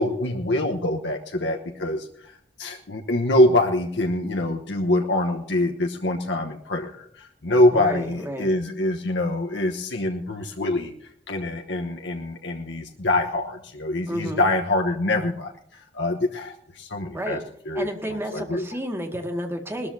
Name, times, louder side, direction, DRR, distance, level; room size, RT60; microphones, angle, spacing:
voice 1, 0.0-17.4 17.7-17.9 18.3-18.6, left 1 dB, 80° left, 2 dB, 1.1 m, -24 dB
voice 2, 7.7-8.5 14.1-14.4 17.1-17.4 17.7-19.9, equal, 15° right, 4 dB, 2.0 m, -31 dB
20.0 x 13.5 x 2.8 m, 0.68 s
head